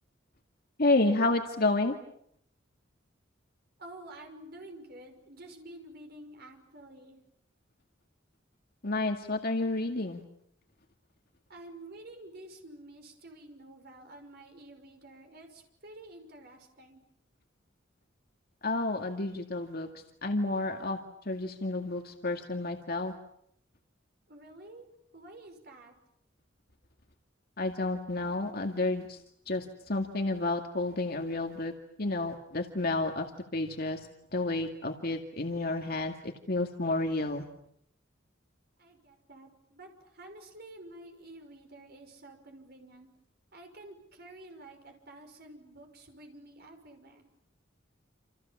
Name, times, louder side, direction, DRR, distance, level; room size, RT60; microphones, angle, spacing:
voice 1, 0.8-1.9 8.8-10.2 18.6-19.9 20.2-21.0 21.3-23.1 27.6-29.2 29.5-31.7 32.0-33.3 33.5-34.0 34.3-37.5, left 2 dB, 50° left, 4 dB, 2.2 m, -30 dB
voice 2, 3.8-7.2 11.5-17.0 24.3-24.9 25.1-25.9 38.8-43.1 43.5-47.2, right 1 dB, 55° right, 4 dB, 5.9 m, -50 dB
29.0 x 28.0 x 7.3 m, 0.70 s
head